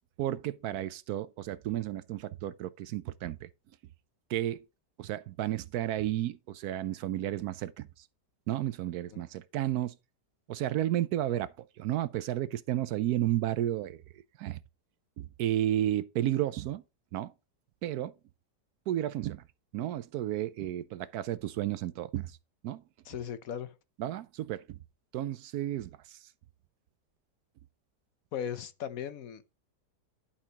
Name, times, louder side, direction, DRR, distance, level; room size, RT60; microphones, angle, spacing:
voice 1, 0.2-3.5 4.3-4.6 5.0-7.9 8.5-9.9 10.5-14.6 15.2-16.8 17.1-17.3 17.8-18.1 18.9-19.4 19.7-22.4 22.6-22.8 24.0-24.8 25.1-26.2, right 13 dB, 75° right, 1.0 m, -32 dB
voice 2, 23.0-23.7 28.3-29.6, left 9 dB, 65° left, 1.1 m, -38 dB
11.0 x 5.7 x 2.9 m
omnidirectional pair, 1.8 m